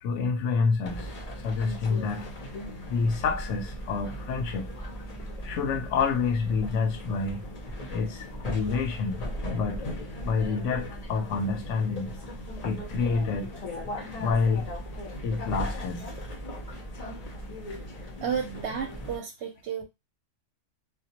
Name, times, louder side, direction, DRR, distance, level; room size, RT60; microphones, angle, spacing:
voice 1, 0.0-1.1 1.4-2.3 2.9-4.7 5.4-7.4 7.9-9.9 10.2-12.2 12.6-13.6 14.1-14.7 15.2-16.2, left 4 dB, 70° left, 0.8 m, -28 dB
sound 1, 0.8-19.2, equal, 45° left, 0.5 m, -38 dB
voice 2, 18.2-19.8, right 7 dB, 65° right, 0.8 m, -32 dB
2.2 x 2.2 x 2.8 m
omnidirectional pair, 1.4 m